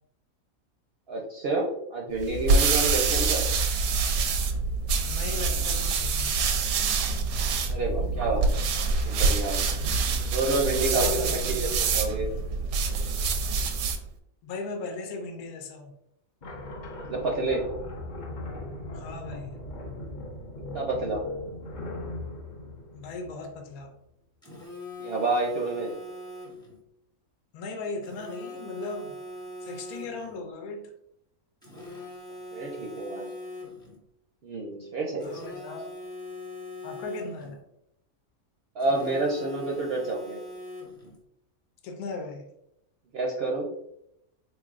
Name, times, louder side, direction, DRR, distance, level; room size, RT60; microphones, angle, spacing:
voice 1, 1.1-3.4 7.7-8.5 9.0-9.6 10.3-11.2 11.5-12.3 17.1-17.6 20.7-21.2 25.0-25.9 32.5-33.2 34.4-35.5 38.8-40.4 43.1-43.7, right 2 dB, 60° right, -1 dB, 0.7 m, -28 dB
sound 1, 2.2-14.1, right 4 dB, 80° right, 1.0 m, -26 dB
voice 2, 5.0-6.3 11.0-11.7 14.4-15.9 18.9-19.5 22.9-23.9 27.5-29.2 29.6-30.9 35.2-35.9 36.8-37.6 41.8-42.5, left 3 dB, 80° left, 4 dB, 1.1 m, -37 dB
sound 2, 16.4-23.8, left 1 dB, 50° left, 0.6 m, -39 dB
Telephone, 24.4-26.8 28.0-30.4 31.6-34.0 35.2-37.6 38.8-41.2, left 1 dB, 5° left, 0.5 m, -42 dB
3.9 x 3.3 x 2.4 m, 0.79 s
omnidirectional pair, 1.5 m